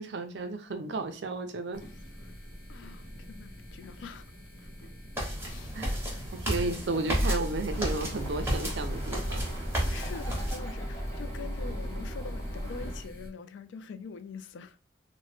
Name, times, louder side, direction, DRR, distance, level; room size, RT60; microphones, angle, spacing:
voice 1, 0.0-1.8 5.7-6.0 6.3-9.5, right 3 dB, 70° right, 0.5 m, -33 dB
sound 1, 1.7-13.3, equal, 50° left, 0.8 m, -46 dB
voice 2, 1.9-2.3 2.7-4.2 4.6-4.7 5.4-6.3 6.6-7.2 9.8-14.8, left 5 dB, 80° left, 0.3 m, -45 dB
sound 2, 5.2-10.6, equal, 10° right, 1.0 m, -32 dB
Bird, 7.6-13.1, equal, 15° left, 0.9 m, -36 dB
2.9 x 2.1 x 3.1 m
head